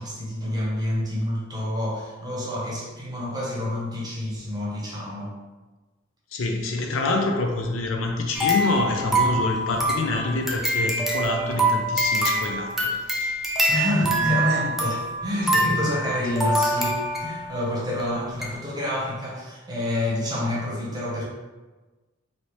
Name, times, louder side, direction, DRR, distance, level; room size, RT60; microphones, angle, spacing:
voice 1, 0.0-5.4 13.7-21.2, left 1 dB, 20° right, -5 dB, 0.8 m, -28 dB
voice 2, 6.3-13.5 14.0-14.2 15.5-15.8, left 2 dB, 70° left, 2 dB, 0.5 m, -27 dB
sound 1, 8.3-17.5 18.0-18.1 18.4-18.5, right 1 dB, ahead, 0.4 m, -25 dB
3.2 x 2.7 x 3.0 m, 1.2 s
head